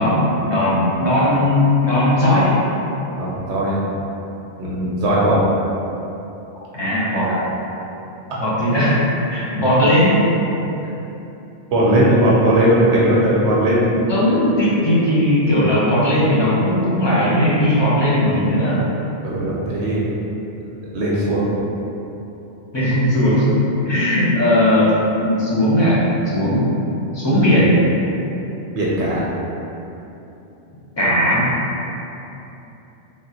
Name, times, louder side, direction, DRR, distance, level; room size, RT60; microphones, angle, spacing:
voice 1, 0.0-2.6 6.7-7.4 8.4-10.2 14.1-18.8 22.7-23.5 23.8-24.9 25.2-26.0 26.3-26.7 27.1-27.8 31.0-31.4, left 1 dB, 30° left, -9 dB, 0.6 m, -17 dB
voice 2, 3.2-3.8 4.6-5.4 7.3-7.4 11.7-14.0 19.2-20.1 20.8-21.5 28.7-29.2, right 1 dB, 80° right, -6 dB, 0.9 m, -18 dB
3.4 x 2.3 x 2.7 m, 3.0 s
omnidirectional pair, 1.2 m